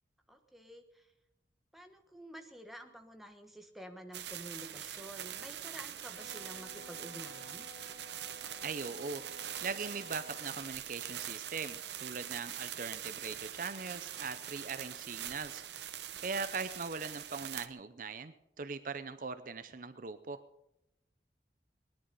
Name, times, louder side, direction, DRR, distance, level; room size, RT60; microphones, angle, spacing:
voice 1, 0.3-1.1 1.7-7.7 17.4-17.5, equal, ahead, 4 dB, 1.3 m, -50 dB
sound 1, 4.1-17.7, right 10 dB, 80° right, 0.8 m, -43 dB
Wind instrument woodwind instrument, 6.1-10.7, equal, 65° left, 1.1 m, -53 dB
voice 2, 8.6-15.6 16.2-20.4, right 4 dB, 50° right, 12 dB, 0.6 m, -40 dB
19.5 x 11.0 x 5.4 m, 0.86 s
head